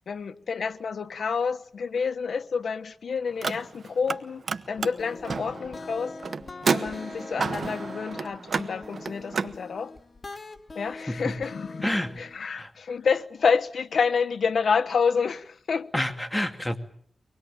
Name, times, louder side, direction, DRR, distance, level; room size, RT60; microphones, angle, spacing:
voice 1, 0.1-6.2 6.7-9.9 10.7-15.9, left 5 dB, 85° left, 1.1 m, -28 dB
Car, 3.3-4.2 4.4-9.5, right 5 dB, 70° right, 1.0 m, -31 dB
sound 1, 4.8-12.4, left 3 dB, 45° left, 2.3 m, -42 dB
voice 2, 11.1-11.4 11.8-12.3 12.6-12.7 15.9-16.8, left 1 dB, 15° left, 2.6 m, -28 dB
24.5 x 20.0 x 8.8 m
cardioid pair, 60°, 0 cm